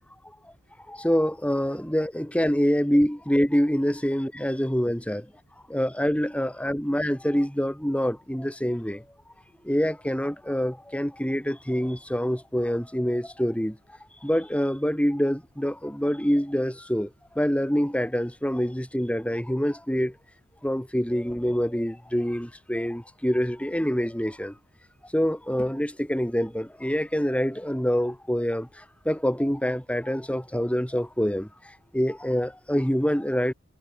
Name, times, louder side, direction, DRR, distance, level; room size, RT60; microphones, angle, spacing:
voice 1, 0.9-5.3 5.7-9.0 9.6-13.8 14.2-20.1 20.6-24.6 25.1-33.5, equal, 5° left, 5.6 m, -26 dB
head